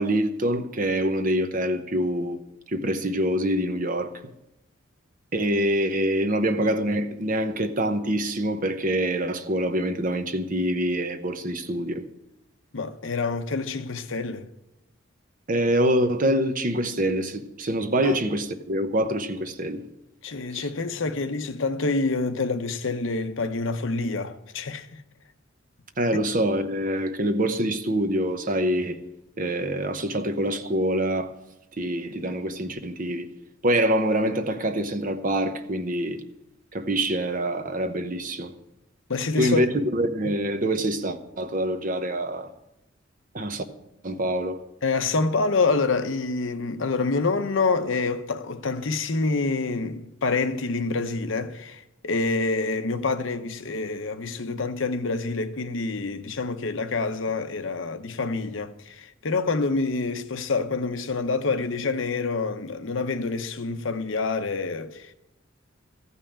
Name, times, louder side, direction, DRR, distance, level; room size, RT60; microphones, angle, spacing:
voice 1, 0.0-2.4 2.7-4.2 5.3-12.0 15.5-19.8 20.5-20.7 26.0-29.0 29.4-31.3 31.8-33.3 33.6-36.2 36.7-38.5 39.4-42.5 43.3-43.6 44.0-44.6, right 1 dB, 40° right, 0.9 m, -25 dB
voice 2, 12.7-14.5 18.0-18.2 20.2-25.0 39.1-39.6 44.8-65.1, left 3 dB, 70° left, 0.8 m, -27 dB
14.5 x 5.6 x 8.6 m
head